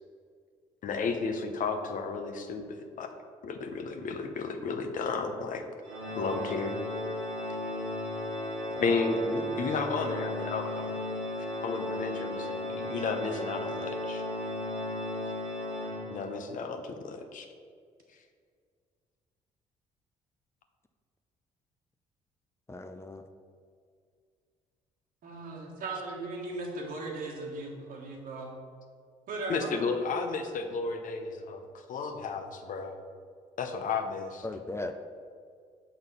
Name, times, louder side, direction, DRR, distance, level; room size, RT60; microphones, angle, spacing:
voice 1, 0.8-3.1 3.4-5.6 6.2-6.7 8.8-10.9 11.6-14.2 16.1-17.4 29.5-32.9 33.6-34.5, left 4 dB, 55° left, 5 dB, 0.8 m, -33 dB
Organ, 5.8-16.6, left 1 dB, 90° right, 1.2 m, -35 dB
voice 2, 22.7-23.2 34.4-35.1, left 2 dB, 15° left, 6 dB, 0.5 m, -38 dB
voice 3, 25.2-28.5 29.3-30.0, right 2 dB, 65° right, -2 dB, 1.6 m, -37 dB
6.3 x 3.8 x 5.4 m, 2.1 s
hypercardioid pair, 55°, 16 cm